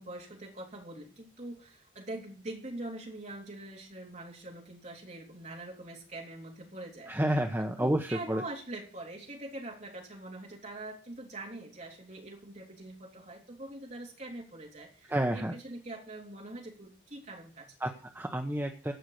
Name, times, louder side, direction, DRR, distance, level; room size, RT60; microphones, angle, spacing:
voice 1, 0.0-7.2 7.6-17.9, right 2 dB, 35° right, -1 dB, 3.4 m, -44 dB
voice 2, 7.1-8.4 15.1-15.5 17.8-18.9, right 1 dB, 10° right, 3 dB, 0.8 m, -30 dB
16.0 x 5.7 x 6.6 m, 0.40 s
head